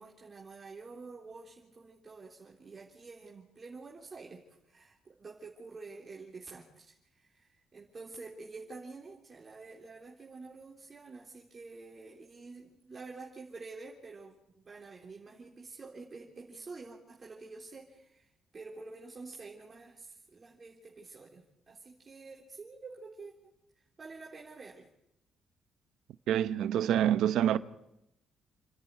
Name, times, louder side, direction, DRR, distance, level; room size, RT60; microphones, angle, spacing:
voice 1, 0.0-14.4 14.6-23.3 24.0-24.9, right 3 dB, 35° right, 3.6 m, -48 dB
voice 2, 26.3-27.6, right 10 dB, 80° right, 1.0 m, -26 dB
29.5 x 11.0 x 9.6 m
cardioid pair, 90°, 0 cm